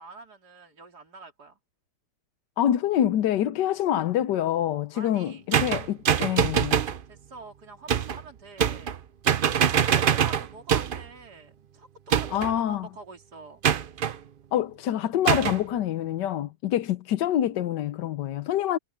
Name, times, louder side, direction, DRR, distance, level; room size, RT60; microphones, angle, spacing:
voice 1, 0.0-1.6 4.9-5.4 7.0-8.9 9.6-11.9 12.2-13.6, right 3 dB, 65° right, 3.4 m, -46 dB
voice 2, 2.6-6.8 12.3-12.9 14.5-18.8, left 11 dB, 80° left, 1.4 m, -26 dB
sound 1, 5.5-7.0 7.9-8.2 8.6-9.0 9.3-11.1 12.1-12.6 13.6-14.2 15.3-15.6, right 8 dB, 80° right, 0.4 m, -24 dB
omnidirectional pair, 1.9 m